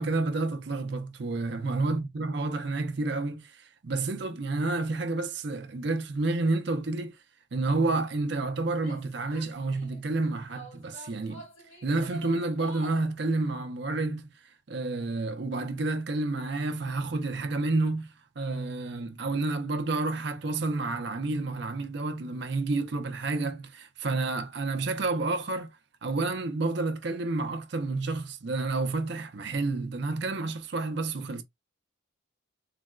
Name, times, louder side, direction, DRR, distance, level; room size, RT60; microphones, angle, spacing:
voice 1, 0.0-7.2 7.5-11.5 11.8-14.2 14.7-25.7 26.0-31.4, right 3 dB, 55° right, 0.6 m, -30 dB
Female speech woman speaking / Yell, 8.7-10.0 10.5-13.1, right 2 dB, 85° left, 1.8 m, -46 dB
4.0 x 2.1 x 2.3 m
head